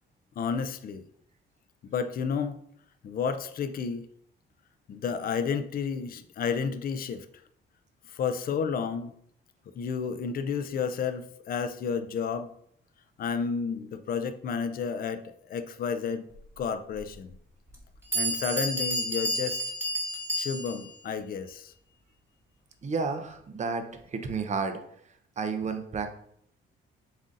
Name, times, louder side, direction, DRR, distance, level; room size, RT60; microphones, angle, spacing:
voice 1, 0.4-1.0 1.8-2.6 3.0-4.1 4.9-7.3 8.1-9.1 9.8-12.5 13.2-16.3 16.6-17.3 18.1-19.6 20.3-21.7, left 6 dB, 50° left, 10 dB, 0.4 m, -31 dB
Bell, 16.9-17.0 17.7-17.8 18.1-20.9, right 1 dB, 15° right, 1.5 m, -30 dB
voice 2, 22.8-24.8 25.4-26.2, right 4 dB, 35° right, 7 dB, 0.7 m, -31 dB
7.3 x 2.7 x 2.5 m, 0.68 s
cardioid pair, 90°, 20 cm